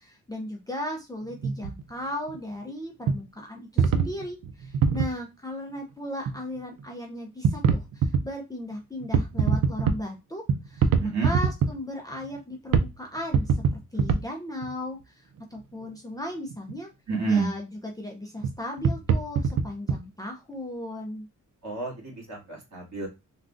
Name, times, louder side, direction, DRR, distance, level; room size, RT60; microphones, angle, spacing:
voice 1, 0.0-16.9 17.3-21.3, left 1 dB, 10° left, 1 dB, 0.5 m, -36 dB
sound 1, 1.3-1.8 2.3-2.4 3.1-3.2 3.8-5.1 6.2-6.4 6.8-6.9 7.4-8.2 9.0-10.0 10.5-11.7 12.4-12.5 12.7-12.9 13.2-14.2 14.6-14.7 16.5-16.7 18.4-18.5 18.8-20.0, right 6 dB, 90° right, 0.5 m, -23 dB
voice 2, 11.0-11.3 17.1-17.5 21.6-23.1, right 4 dB, 55° right, -2 dB, 2.0 m, -29 dB
3.6 x 2.3 x 2.4 m, 0.24 s
wide cardioid pair, 120°, 32 cm